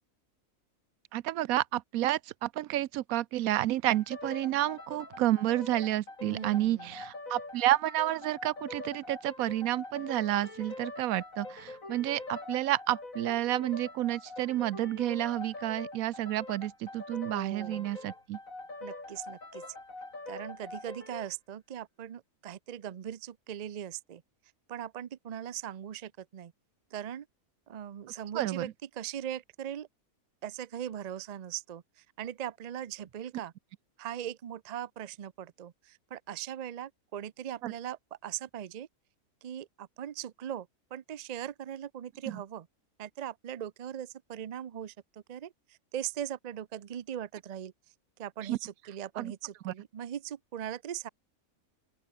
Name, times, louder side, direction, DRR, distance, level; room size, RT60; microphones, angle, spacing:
voice 1, 1.1-18.4 28.3-28.7 37.6-37.7 42.3-42.4 48.4-48.6 49.2-49.3 49.6-49.7, right 14 dB, 80° right, 1.0 m, -30 dB
sound 1, 3.9-21.3, left 2 dB, 70° left, 5.4 m, -44 dB
voice 2, 6.3-7.0 17.3-17.9 18.8-19.6 20.3-24.2 24.7-26.5 26.9-27.3 27.7-29.9 30.4-31.8 32.2-33.5 34.0-38.9 39.4-42.7 43.0-45.5 45.9-47.7 48.2-51.1, right 10 dB, 60° right, 0.4 m, -40 dB
open air
omnidirectional pair, 1.5 m